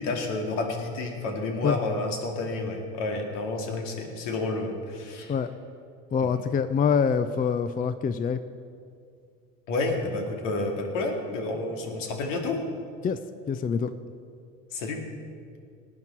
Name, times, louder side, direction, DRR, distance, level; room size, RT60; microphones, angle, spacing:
voice 1, 0.0-5.4 6.2-6.4 9.7-12.6 14.7-15.0, left 2 dB, 70° left, 3 dB, 2.3 m, -30 dB
voice 2, 6.1-8.4 13.0-13.2 13.5-13.9, left 6 dB, 25° left, 12 dB, 0.5 m, -25 dB
19.0 x 9.6 x 4.6 m, 2.3 s
hypercardioid pair, 75°, 38 cm